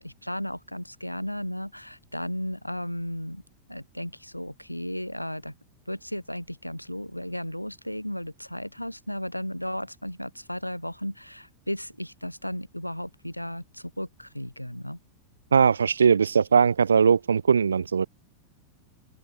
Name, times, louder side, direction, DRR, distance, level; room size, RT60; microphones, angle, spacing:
voice 1, 0.0-3.4 3.7-5.5 5.9-15.0, equal, 90° left, 1.8 m, -35 dB
voice 2, 15.5-18.1, right 6 dB, 70° right, 0.7 m, -20 dB
open air
figure-of-eight pair, 90°, 0 cm